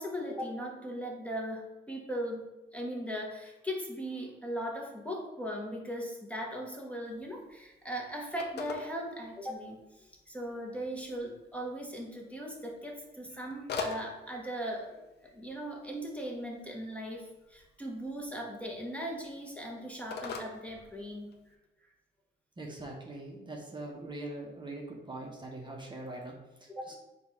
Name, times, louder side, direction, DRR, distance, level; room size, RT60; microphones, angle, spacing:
voice 1, 0.0-21.3 24.0-24.1 26.7-27.0, equal, 5° left, -1 dB, 0.8 m, -39 dB
Telephone, 7.0-21.5, left 5 dB, 55° left, 0.6 m, -46 dB
voice 2, 22.6-27.0, right 2 dB, 25° right, -1 dB, 0.8 m, -42 dB
4.5 x 2.4 x 4.1 m, 1.0 s
cardioid pair, 90°, 20 cm